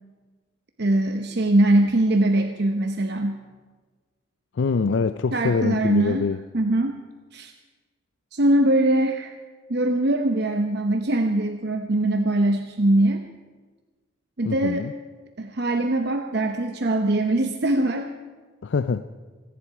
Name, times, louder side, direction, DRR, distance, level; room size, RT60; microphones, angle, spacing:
voice 1, 0.8-3.4 5.3-6.3 6.5-7.0 7.3-7.5 8.3-9.3 9.7-13.2 14.4-14.9 15.4-18.1, right 1 dB, 55° right, 5 dB, 0.8 m, -22 dB
voice 2, 4.6-6.4 14.5-14.9 18.6-19.0, left 4 dB, 65° left, 12 dB, 0.4 m, -24 dB
27.0 x 10.5 x 4.8 m, 1.4 s
head